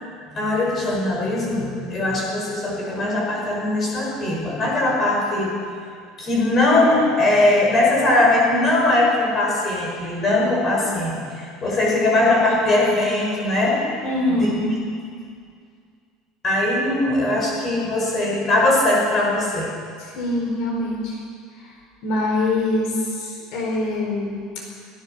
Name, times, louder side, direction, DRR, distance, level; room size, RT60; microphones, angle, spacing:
voice 1, 0.3-5.5 6.2-13.8 14.3-14.5 16.4-19.7, left 2 dB, 20° left, -3 dB, 5.5 m, -20 dB
voice 2, 14.0-14.8 20.0-21.2 21.6-21.7 22.0-24.6, left 2 dB, 55° left, 0 dB, 4.6 m, -24 dB
23.0 x 18.0 x 6.6 m, 2.2 s
cardioid pair, 175°, 0 cm